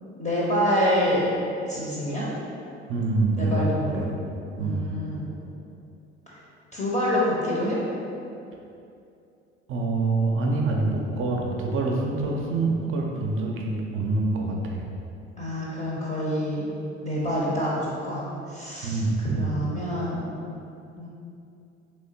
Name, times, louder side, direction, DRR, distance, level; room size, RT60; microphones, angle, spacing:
voice 1, 0.2-1.3 1.7-2.3 3.4-4.0 4.6-5.3 6.3-6.4 6.7-7.8 15.4-16.7 17.0-20.4 21.0-21.1, equal, 20° left, -6 dB, 0.7 m, -27 dB
voice 2, 2.9-4.1 4.6-4.8 9.7-14.8 18.8-19.5, right 3 dB, 35° right, 0 dB, 0.6 m, -26 dB
3.4 x 3.1 x 2.7 m, 2.6 s
figure-of-eight pair, 55°, 36 cm